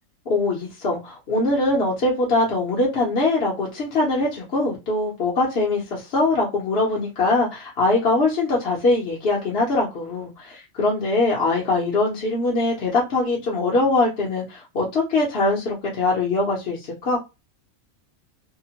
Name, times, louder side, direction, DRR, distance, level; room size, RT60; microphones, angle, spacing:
voice 1, 0.3-17.2, left 2 dB, 50° left, -4 dB, 0.9 m, -22 dB
2.8 x 2.1 x 2.8 m, 0.25 s
omnidirectional pair, 1.6 m